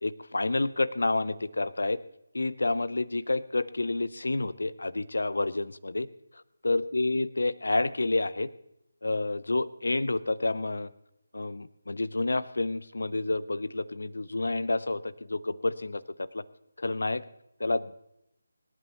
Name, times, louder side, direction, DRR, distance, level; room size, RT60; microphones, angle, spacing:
voice 1, 0.0-2.0 2.3-6.1 6.3-8.5 9.0-10.9 11.3-16.4 16.8-17.2 17.6-18.0, left 2 dB, 60° left, 18 dB, 0.7 m, -29 dB
24.5 x 11.0 x 3.0 m, 0.80 s
figure-of-eight pair, 155°, 0 cm